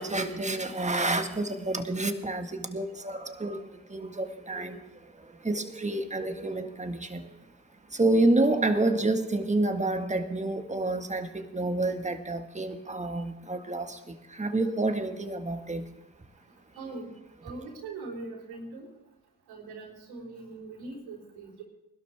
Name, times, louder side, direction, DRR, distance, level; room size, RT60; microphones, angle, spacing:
voice 1, 0.0-4.8 5.4-7.3 7.9-15.8, right 2 dB, 20° right, 6 dB, 1.7 m, -29 dB
voice 2, 16.8-17.1 17.4-18.9 19.5-21.6, right 3 dB, 85° right, -1 dB, 3.9 m, -41 dB
20.5 x 12.0 x 3.5 m, 0.97 s
supercardioid pair, 50°, 37 cm